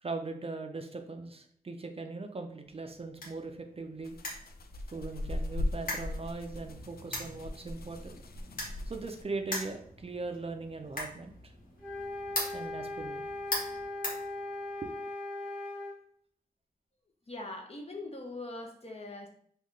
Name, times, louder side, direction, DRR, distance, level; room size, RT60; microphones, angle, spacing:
voice 1, 0.0-4.2 4.9-8.2 8.9-11.5 12.5-13.2 14.8-14.9, right 3 dB, 40° right, 5 dB, 0.4 m, -40 dB
sound 1, 2.6-14.9, left 1 dB, 60° left, 1.2 m, -42 dB
sound 2, 4.0-9.2, left 1 dB, 80° left, 0.4 m, -38 dB
sound 3, 11.8-16.0, left 2 dB, 10° right, 0.9 m, -39 dB
voice 2, 17.3-19.3, left 2 dB, 40° left, 1 dB, 0.7 m, -42 dB
3.7 x 2.3 x 3.2 m, 0.63 s
wide cardioid pair, 85°, 16 cm